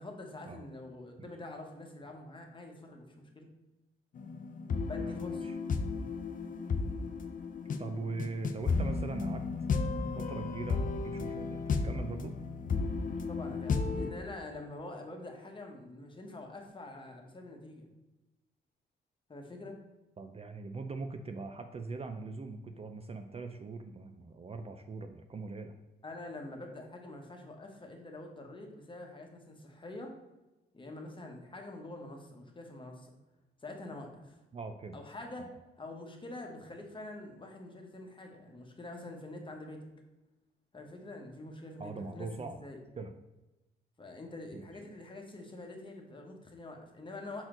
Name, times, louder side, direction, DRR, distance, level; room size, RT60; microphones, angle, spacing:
voice 1, 0.0-3.5 4.8-5.5 7.6-7.8 13.3-17.9 19.3-19.8 26.0-30.1 30.7-33.1 33.6-34.4 34.9-35.5 35.8-39.9 40.7-42.8 44.0-47.5, left 2 dB, 25° left, 2 dB, 1.2 m, -46 dB
sound 1, 4.2-14.1, left 4 dB, 45° left, 0.6 m, -34 dB
voice 2, 5.0-5.6 7.8-9.5 10.2-12.3 20.2-25.8 34.5-35.0 35.4-35.5 41.8-42.6 43.0-43.1 44.5-44.7, right 3 dB, 35° right, 7 dB, 0.5 m, -41 dB
6.1 x 4.3 x 3.8 m, 1.0 s
cardioid pair, 85°, 19 cm